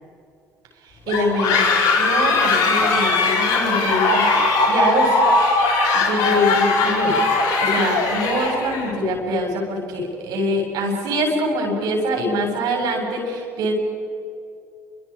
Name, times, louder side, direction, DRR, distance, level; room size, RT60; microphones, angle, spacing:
voice 1, 0.8-1.6 2.0-5.3 5.7-7.2 7.6-13.7, equal, 65° right, 1 dB, 7.6 m, -24 dB
sound 1, 1.1-8.9, left 3 dB, 70° left, 5.8 m, -19 dB
29.5 x 26.0 x 5.1 m, 2.5 s
hypercardioid pair, 60°, 7 cm